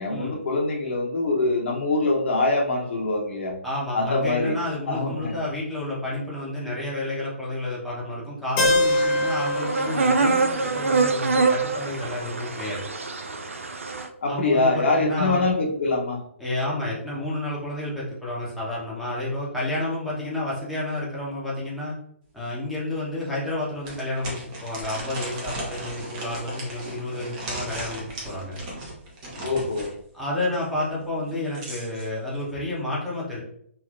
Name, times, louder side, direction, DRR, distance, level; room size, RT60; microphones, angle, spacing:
voice 1, 0.0-3.5 3.9-4.6 4.9-5.3 14.2-16.2 29.4-29.9, left 2 dB, 60° left, -1 dB, 0.7 m, -24 dB
voice 2, 3.6-12.8 14.3-15.4 16.4-21.9 22.3-28.6 30.1-33.4, left 1 dB, ahead, -8 dB, 0.8 m, -30 dB
Keyboard (musical), 8.6-12.5, left 1 dB, 25° left, 0.7 m, -26 dB
sound 1, 8.8-14.1, right 4 dB, 75° right, 0.4 m, -25 dB
sound 2, 22.4-22.5 22.9-23.0 23.8-29.9 31.2-32.1, right 1 dB, 30° right, 1.0 m, -36 dB
3.2 x 2.7 x 2.4 m, 0.69 s
figure-of-eight pair, 130°, 7 cm